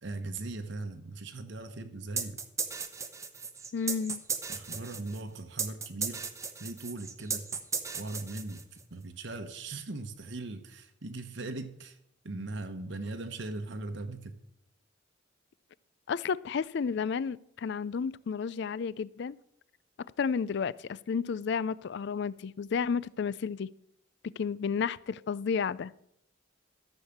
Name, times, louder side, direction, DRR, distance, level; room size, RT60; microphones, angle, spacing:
voice 1, 0.0-2.4 4.5-6.3 6.6-7.4 8.0-8.6 8.9-12.0 12.2-14.4, right 2 dB, 60° right, 1.0 m, -39 dB
sound 1, 2.2-8.9, right 5 dB, 15° right, 0.9 m, -36 dB
voice 2, 3.7-4.2 16.1-19.4 20.2-23.7 24.4-25.9, left 6 dB, 60° left, 0.4 m, -32 dB
13.5 x 6.5 x 7.2 m
head